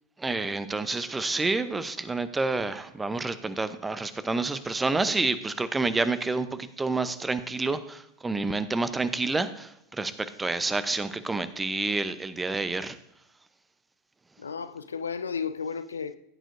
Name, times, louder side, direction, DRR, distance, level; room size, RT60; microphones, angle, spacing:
voice 1, 0.2-13.0, right 3 dB, 15° right, 0.7 m, -29 dB
voice 2, 14.4-16.2, left 6 dB, 80° left, 0.5 m, -33 dB
15.0 x 9.0 x 2.7 m
figure-of-eight pair, 85°, 0 cm